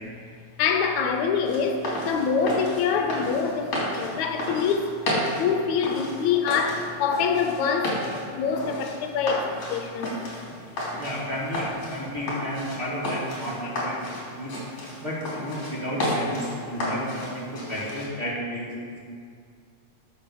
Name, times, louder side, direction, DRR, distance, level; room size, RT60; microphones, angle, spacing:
voice 1, 0.6-4.9 5.4-8.0 8.3-10.1, left 6 dB, 80° left, 5 dB, 2.1 m, -25 dB
sound 1, 1.4-18.1, left 1 dB, 55° left, 4.1 m, -32 dB
voice 2, 11.0-14.6 15.0-19.0, equal, 20° right, -8 dB, 2.4 m, -32 dB
11.0 x 6.9 x 6.7 m, 2.2 s
omnidirectional pair, 3.4 m